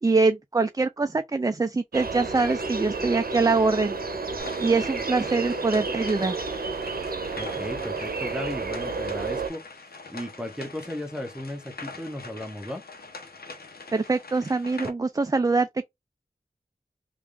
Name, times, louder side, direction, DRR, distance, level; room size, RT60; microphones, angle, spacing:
voice 1, 0.0-3.9 4.6-6.4 13.9-15.9, right 3 dB, 25° right, 0.3 m, -24 dB
sound 1, 1.9-9.5, right 4 dB, 75° right, 0.7 m, -31 dB
sound 2, 4.4-14.9, left 4 dB, 85° left, 0.8 m, -43 dB
voice 2, 7.4-9.6 10.1-12.8, equal, 5° right, 0.9 m, -35 dB
3.5 x 2.5 x 3.3 m
wide cardioid pair, 50°, 15 cm